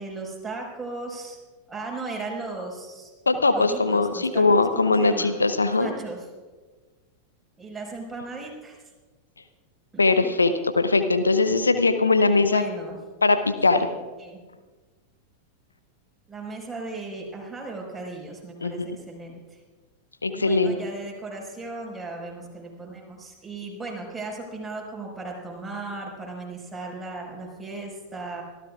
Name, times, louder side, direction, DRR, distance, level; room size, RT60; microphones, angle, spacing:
voice 1, 0.0-1.4 1.7-3.1 3.5-5.4 5.6-6.2 7.6-8.8 9.9-10.3 12.3-12.9 13.8-13.9 14.2-14.4 16.3-19.6 20.3-28.4, right 3 dB, 10° right, -2 dB, 5.2 m, -36 dB
voice 2, 3.3-5.9 10.0-12.6 13.2-13.9 18.6-18.9 20.2-20.8, left 3 dB, 80° left, 10 dB, 0.7 m, -21 dB
25.0 x 14.5 x 2.5 m, 1.3 s
figure-of-eight pair, 90°, 0 cm